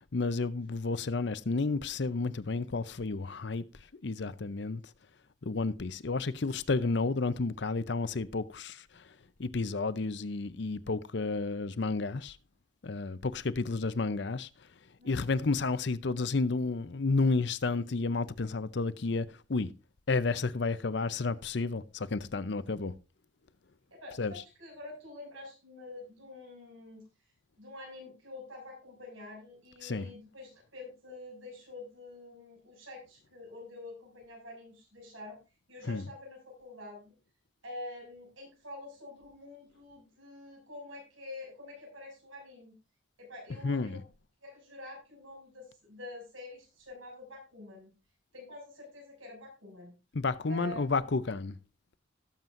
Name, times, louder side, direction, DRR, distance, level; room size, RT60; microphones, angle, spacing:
voice 1, 0.1-3.6 4.0-4.8 5.4-9.1 9.4-12.4 12.8-14.5 15.0-19.7 20.1-22.9 24.2-24.4 29.8-30.1 35.8-36.1 43.5-44.0 50.1-51.6, left 3 dB, 60° left, 0.6 m, -31 dB
voice 2, 15.0-15.3 23.9-27.0 27.6-35.4 35.7-37.1 37.6-42.8 43.2-44.1 44.4-47.9 48.3-49.9 50.5-51.1, left 2 dB, 85° right, 6.6 m, -47 dB
18.0 x 7.4 x 2.6 m
head